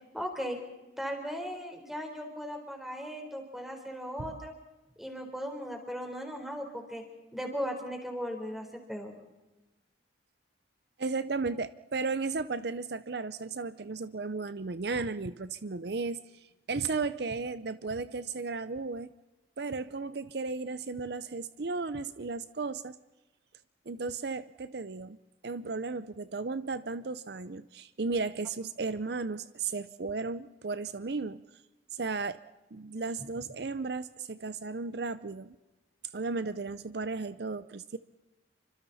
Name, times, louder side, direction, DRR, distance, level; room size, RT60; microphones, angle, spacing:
voice 1, 0.1-0.6 1.0-4.5 5.0-7.0 7.3-9.1, equal, ahead, 3 dB, 4.0 m, -37 dB
voice 2, 11.0-19.1 19.6-23.0 23.9-25.2 25.4-31.4 31.9-32.4 32.7-35.6 36.1-38.0, right 4 dB, 60° right, 14 dB, 0.6 m, -35 dB
29.0 x 25.5 x 4.2 m, 1.1 s
head